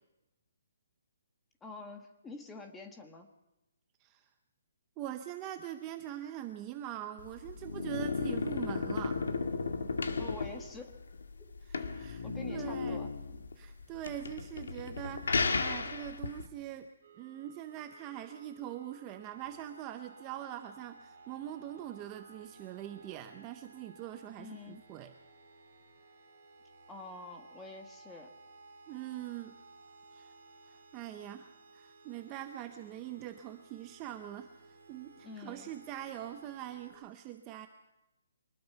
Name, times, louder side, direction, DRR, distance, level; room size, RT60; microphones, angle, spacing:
voice 1, 1.6-3.3 10.2-10.9 11.4-11.5 12.2-13.1 24.4-24.8 26.9-28.3 35.2-35.7, left 3 dB, 5° left, 5 dB, 1.4 m, -47 dB
voice 2, 5.0-9.2 11.7-13.1 13.6-16.9 17.2-25.1 28.9-29.5 30.1-30.3 30.7-34.5 34.9-37.7, right 12 dB, 15° right, 7 dB, 0.7 m, -43 dB
sound 1, 7.2-16.4, left 4 dB, 85° left, 2.2 m, -34 dB
sound 2, 17.0-36.9, right 3 dB, 40° right, 5.2 m, -57 dB
24.5 x 20.5 x 5.8 m, 0.94 s
hypercardioid pair, 175°, 0 cm